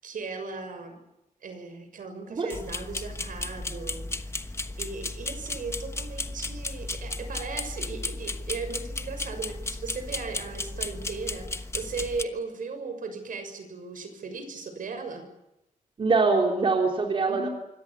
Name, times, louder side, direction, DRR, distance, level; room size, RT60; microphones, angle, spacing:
voice 1, 0.0-1.0 1.4-15.3 17.3-17.5, right 4 dB, 75° right, 8 dB, 6.5 m, -37 dB
sound 1, 2.5-12.2, left 2 dB, 20° left, 1.2 m, -34 dB
voice 2, 16.0-17.5, right 4 dB, 40° right, 2 dB, 3.4 m, -23 dB
26.5 x 24.0 x 7.3 m, 0.88 s
wide cardioid pair, 165°, 14 cm